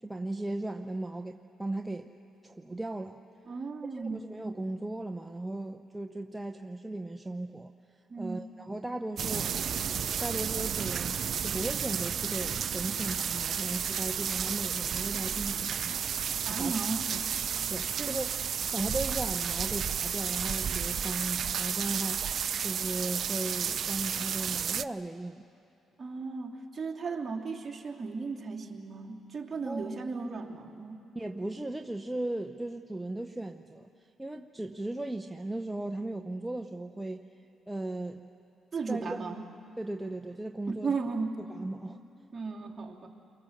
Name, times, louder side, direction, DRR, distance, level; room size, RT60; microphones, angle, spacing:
voice 1, 0.0-2.1 2.4-3.2 3.9-7.7 8.2-9.6 10.2-16.3 16.6-16.7 17.1-17.2 17.7-18.3 18.7-22.3 22.6-25.4 29.7-30.1 31.1-37.3 37.7-38.2 38.9-39.2 39.8-40.9 41.5-42.0, right 2 dB, 10° right, 5 dB, 0.8 m, -37 dB
voice 2, 3.4-4.2 8.1-8.4 16.4-17.1 18.0-18.1 26.0-31.0 38.7-39.4 40.7-41.4 42.3-43.1, right 4 dB, 30° right, -1 dB, 2.9 m, -35 dB
sound 1, 9.2-24.8, right 8 dB, 55° right, 0.6 m, -32 dB
29.0 x 23.5 x 7.3 m, 2.7 s
cardioid pair, 90°, 0 cm